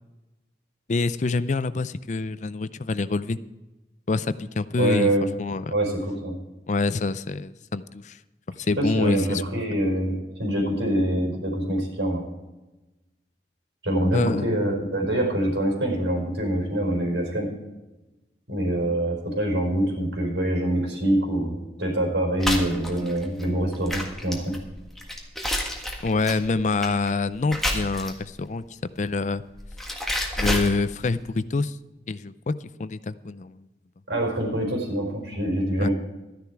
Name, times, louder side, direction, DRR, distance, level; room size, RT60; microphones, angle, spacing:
voice 1, 0.9-3.4 4.1-5.1 5.4-5.7 6.7-8.2 8.6-9.4 14.1-14.5 26.0-28.6 29.0-29.4 30.4-31.8 32.1-32.5 32.8-33.6 35.8-35.9, left 3 dB, 40° left, 15 dB, 0.4 m, -26 dB
voice 2, 4.8-5.3 5.7-6.3 8.8-12.2 13.8-17.5 18.5-24.6 34.1-35.9, right 1 dB, 85° right, 0 dB, 5.1 m, -25 dB
sound 1, 22.4-28.4 29.4-31.2, left 1 dB, ahead, 1.7 m, -30 dB
13.0 x 10.5 x 4.6 m, 1.0 s
head